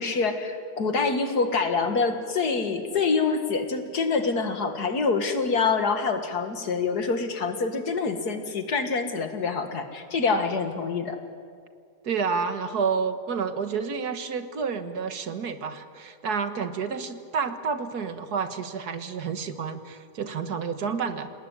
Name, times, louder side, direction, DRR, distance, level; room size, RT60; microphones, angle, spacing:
voice 1, 0.0-11.2, left 4 dB, 75° left, 6 dB, 2.5 m, -26 dB
voice 2, 12.0-21.3, right 5 dB, 75° right, 9 dB, 2.0 m, -29 dB
27.5 x 18.5 x 10.0 m, 2.2 s
omnidirectional pair, 1.7 m